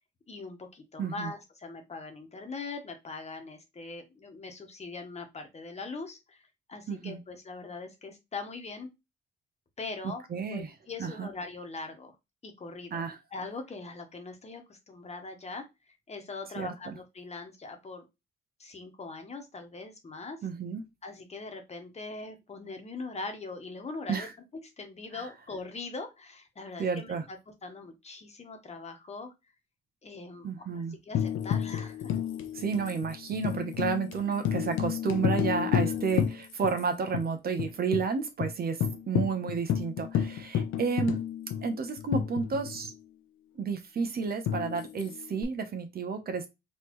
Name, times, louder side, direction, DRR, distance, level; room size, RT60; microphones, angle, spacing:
voice 1, 0.3-6.4 6.7-8.9 9.8-10.2 10.5-12.1 12.4-13.0 13.3-15.7 16.1-18.0 18.6-20.4 21.0-24.3 24.8-27.4 27.6-29.3 30.0-32.2 35.8-35.9, left 3 dB, 35° left, 5 dB, 1.2 m, -41 dB
voice 2, 1.0-1.3 6.9-7.2 10.3-10.7 11.0-11.3 12.9-13.2 16.6-17.0 20.4-20.8 24.1-24.3 25.1-25.3 26.8-27.2 30.4-30.9 32.5-41.2 41.6-42.9 43.6-46.5, right 5 dB, 50° right, 7 dB, 1.0 m, -31 dB
Tambourine, 31.1-36.8 37.1-37.2 37.6-38.1 38.4-38.5 38.8-42.9 44.5-45.4, left 9 dB, 80° left, 0.7 m, -31 dB
4.1 x 3.2 x 3.1 m, 0.22 s
cardioid pair, 90°, 20 cm